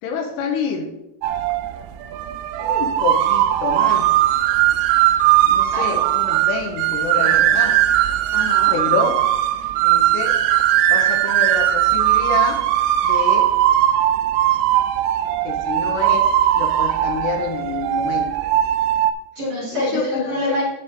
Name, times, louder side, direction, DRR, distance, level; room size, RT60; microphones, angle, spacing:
voice 1, 0.0-0.9 2.6-4.1 5.5-7.9 8.7-9.2 9.8-10.4 10.9-12.6 13.0-13.5 15.5-16.3 16.6-18.4 19.7-20.6, left 5 dB, 80° left, 2 dB, 3.6 m, -27 dB
sound 1, 1.2-19.1, right 12 dB, 90° right, 3.2 m, -18 dB
voice 2, 8.3-8.7 19.4-20.6, left 1 dB, 35° right, -6 dB, 3.7 m, -25 dB
9.9 x 7.5 x 3.6 m, 0.88 s
omnidirectional pair, 5.6 m